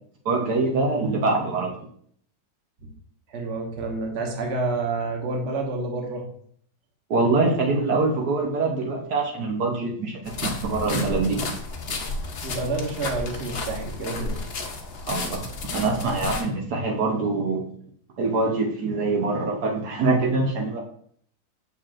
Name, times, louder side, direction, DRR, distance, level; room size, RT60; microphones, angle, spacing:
voice 1, 0.2-1.9 7.1-11.6 15.1-15.4 15.7-17.6 18.2-20.8, right 3 dB, 70° right, 0 dB, 1.4 m, -24 dB
voice 2, 3.3-6.3 12.4-14.4, right 3 dB, 45° right, 1 dB, 1.2 m, -29 dB
sound 1, 10.3-16.4, left 3 dB, 50° left, 0.7 m, -32 dB
6.8 x 5.7 x 2.5 m, 0.62 s
omnidirectional pair, 1.9 m